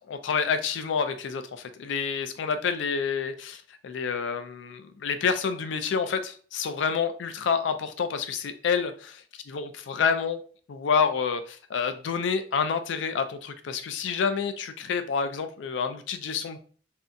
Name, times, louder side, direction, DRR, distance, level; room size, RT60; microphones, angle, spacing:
voice 1, 0.0-9.2 9.5-10.4 10.7-16.6, left 6 dB, 80° left, 9 dB, 0.4 m, -28 dB
2.6 x 2.2 x 2.5 m, 0.42 s
head